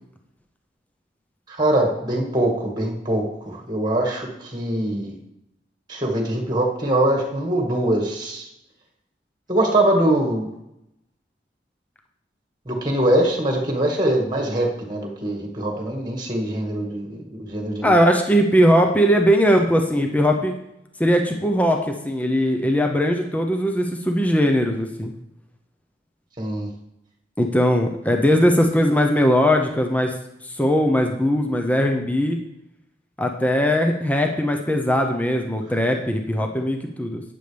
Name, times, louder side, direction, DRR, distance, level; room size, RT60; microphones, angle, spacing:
voice 1, 1.5-5.1 5.9-8.5 9.5-10.5 12.7-18.0 26.4-26.7, right 1 dB, 25° right, 2 dB, 1.9 m, -23 dB
voice 2, 17.8-20.5 21.0-25.1 27.4-30.1 30.4-32.4 33.2-37.2, equal, 10° left, 3 dB, 0.8 m, -19 dB
12.0 x 9.3 x 3.4 m, 0.83 s
head